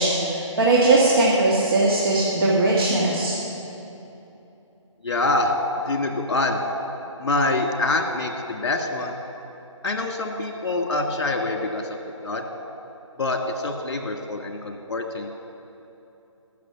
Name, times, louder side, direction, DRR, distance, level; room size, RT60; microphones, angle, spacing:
voice 1, 0.0-3.3, right 2 dB, 45° right, -5 dB, 2.0 m, -19 dB
voice 2, 5.0-5.5 5.9-6.6 7.2-9.2 9.8-11.8 12.2-12.4 13.2-15.3, left 2 dB, 55° left, 3 dB, 1.9 m, -25 dB
20.5 x 6.8 x 6.0 m, 2.9 s
figure-of-eight pair, 150°, 16 cm